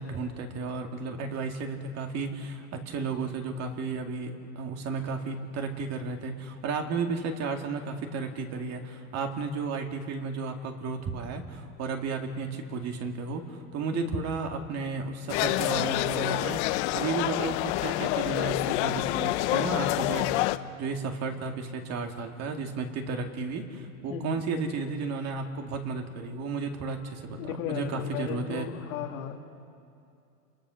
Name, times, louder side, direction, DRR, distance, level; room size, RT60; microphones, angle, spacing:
voice 1, 0.0-28.7, right 4 dB, 40° right, 4 dB, 2.4 m, -33 dB
sound 1, 15.3-20.6, left 17 dB, 55° left, 0.8 m, -27 dB
voice 2, 27.4-29.4, left 8 dB, 70° left, 3 dB, 2.5 m, -35 dB
27.5 x 22.5 x 6.4 m, 2.6 s
supercardioid pair, 135°, 42 cm